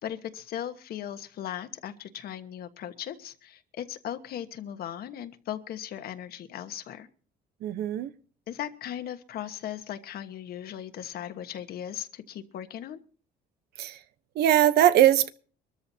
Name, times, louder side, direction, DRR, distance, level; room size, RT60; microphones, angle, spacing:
voice 1, 0.0-7.1 8.5-13.0, left 10 dB, 65° left, 1.4 m, -38 dB
voice 2, 7.6-8.1 13.8-14.0 14.3-15.3, right 12 dB, 75° right, 1.0 m, -21 dB
24.0 x 13.5 x 2.8 m
cardioid pair, 110°, 17 cm